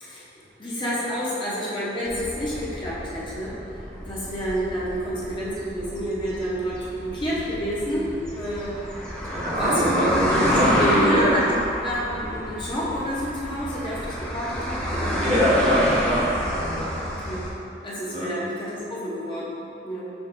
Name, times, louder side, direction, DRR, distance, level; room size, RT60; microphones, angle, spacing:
voice 1, 0.0-8.8 9.5-10.0 10.4-11.4 11.8-15.2 17.0-17.4 17.8-20.1, equal, 30° left, -8 dB, 0.8 m, -30 dB
sound 1, 2.1-17.5, equal, 5° left, 0.5 m, -29 dB
voice 2, 9.2-11.3 15.1-16.9 18.1-18.3, equal, 40° right, -7 dB, 0.8 m, -23 dB
6.0 x 3.1 x 2.6 m, 2.7 s
head